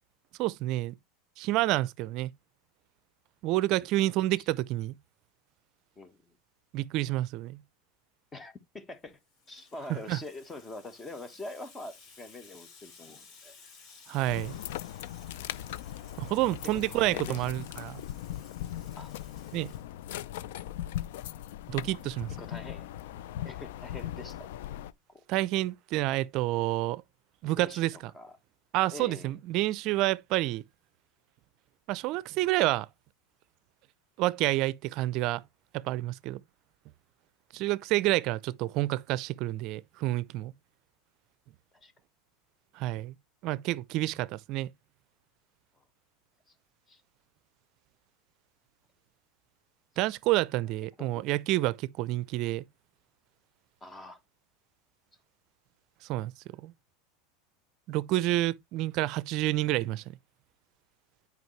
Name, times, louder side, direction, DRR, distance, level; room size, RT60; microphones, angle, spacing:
voice 1, 0.4-0.9 1.4-2.3 3.4-5.0 6.7-7.6 10.1-10.2 14.1-14.6 16.2-18.0 19.5-19.7 21.7-22.3 25.3-27.0 27.4-28.1 28.7-30.6 31.9-32.9 34.2-35.4 35.7-36.4 37.5-40.5 42.8-43.1 43.4-44.7 50.0-52.7 56.1-56.3 56.6-56.7 57.9-60.0, right 17 dB, 50° right, 0.5 m, -29 dB
voice 2, 6.0-6.3 8.3-9.2 9.5-13.5 16.6-17.4 19.0-19.1 22.4-22.9 23.4-24.5 25.1-25.2 27.6-28.4 28.9-29.4 41.7-41.9 46.5-46.6 46.9-47.0 51.0-51.3 53.8-54.2, left 2 dB, 15° left, 1.2 m, -44 dB
Water tap faucet / Sink (filling or washing), 9.0-20.4, left 5 dB, 45° left, 3.4 m, -56 dB
sound 1, 14.3-24.9, left 12 dB, 75° left, 0.5 m, -39 dB
9.4 x 5.2 x 3.2 m
supercardioid pair, 130°, 0 cm